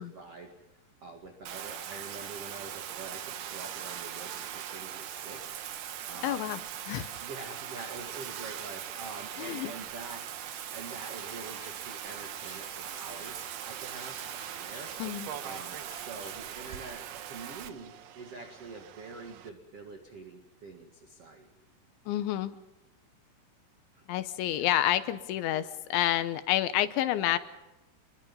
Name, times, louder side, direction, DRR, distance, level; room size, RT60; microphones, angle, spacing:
voice 1, 0.0-6.5 7.2-10.3 10.7-14.2 14.6-14.9 15.4-21.5 23.9-24.1 24.5-24.7, right 3 dB, 45° right, 3 dB, 2.3 m, -46 dB
Bathtub (filling or washing), 1.4-17.7, right 10 dB, 85° right, 1.8 m, -40 dB
voice 2, 6.2-6.6 6.9-7.1 9.4-9.7 15.0-15.3 22.1-22.6 24.1-27.4, left 13 dB, 80° left, 12 dB, 3.2 m, -29 dB
sound 1, 10.4-16.6, left 4 dB, 50° left, 4.9 m, -55 dB
sound 2, 14.2-19.5, right 9 dB, 70° right, 2.9 m, -48 dB
28.5 x 22.0 x 5.4 m, 0.99 s
omnidirectional pair, 5.4 m